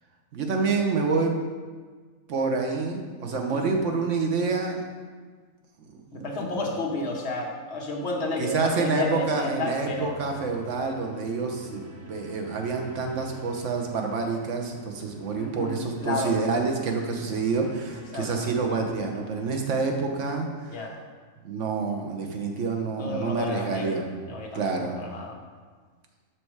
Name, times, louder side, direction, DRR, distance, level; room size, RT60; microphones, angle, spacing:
voice 1, 0.3-1.3 2.3-4.8 6.1-6.7 8.4-11.8 12.1-20.8 21.4-24.1 24.5-25.0, right 4 dB, 60° right, 3 dB, 1.2 m, -28 dB
voice 2, 3.3-3.7 6.1-10.1 15.4-15.8 16.0-16.4 18.1-18.5 20.7-21.0 23.0-24.0 24.3-25.4, left 2 dB, 50° left, 0 dB, 1.3 m, -31 dB
sound 1, 8.6-19.6, right 1 dB, 15° right, 0.6 m, -48 dB
6.4 x 5.9 x 4.7 m, 1.5 s
omnidirectional pair, 1.5 m